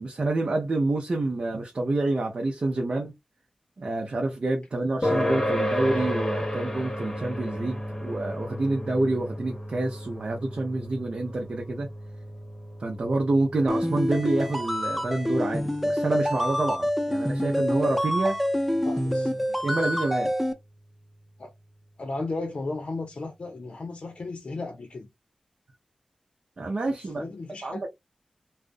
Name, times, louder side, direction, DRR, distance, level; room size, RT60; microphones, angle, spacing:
voice 1, 0.0-3.2 3.8-11.9 12.8-18.4 19.6-20.3 26.6-27.2 27.6-27.9, right 2 dB, 55° right, 0.6 m, -27 dB
sound 1, 5.0-19.9, equal, 25° left, 0.8 m, -34 dB
sound 2, 13.7-20.5, equal, 5° right, 0.5 m, -27 dB
voice 2, 18.8-19.6 21.4-21.5 22.0-25.1 27.0-27.9, left 3 dB, 60° left, 0.5 m, -35 dB
2.4 x 2.0 x 2.5 m
wide cardioid pair, 90°, 2 cm